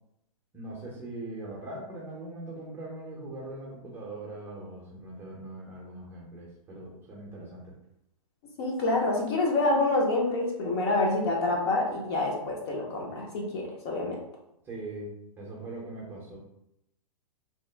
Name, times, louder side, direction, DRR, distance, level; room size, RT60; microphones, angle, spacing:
voice 1, 0.5-7.7 14.6-16.4, right 2 dB, 10° right, -4 dB, 0.7 m, -41 dB
voice 2, 8.6-14.2, left 2 dB, 45° left, -1 dB, 0.8 m, -27 dB
2.9 x 2.0 x 3.3 m, 0.79 s
hypercardioid pair, 145°, 19 cm